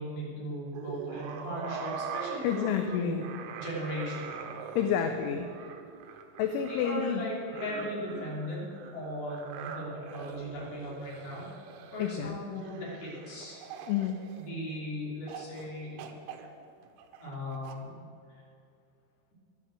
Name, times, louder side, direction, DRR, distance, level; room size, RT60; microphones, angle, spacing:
voice 1, 0.0-3.2 3.6-4.3 6.7-8.7 8.9-11.5 11.9-13.6 14.4-16.0 17.2-18.0, equal, 35° left, -5 dB, 4.0 m, -37 dB
sound 1, 0.7-14.8 15.3-15.7 16.0-17.8, right 6 dB, 75° right, 3.3 m, -43 dB
voice 2, 2.4-3.3 4.8-5.5 6.4-7.3 12.0-12.6 13.9-14.2, left 8 dB, 80° left, 6 dB, 3.0 m, -29 dB
11.0 x 10.5 x 7.5 m, 2.4 s
omnidirectional pair, 5.8 m